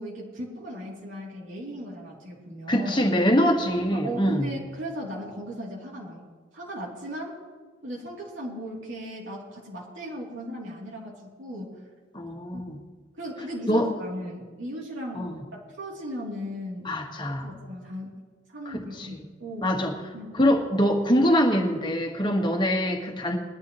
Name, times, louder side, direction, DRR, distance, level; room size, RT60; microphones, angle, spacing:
voice 1, 0.0-3.0 3.9-6.2 6.5-7.4 7.8-11.8 12.5-12.6 13.2-16.9 17.4-18.2 18.5-19.7 20.1-20.4 22.3-22.4, equal, 75° right, -5 dB, 3.1 m, -37 dB
voice 2, 2.7-4.5 12.1-12.8 13.7-13.9 15.1-15.4 16.8-17.5 18.6-19.2 19.6-19.9 20.3-23.4, equal, 25° left, 2 dB, 1.5 m, -24 dB
21.0 x 12.0 x 3.1 m, 1.5 s
head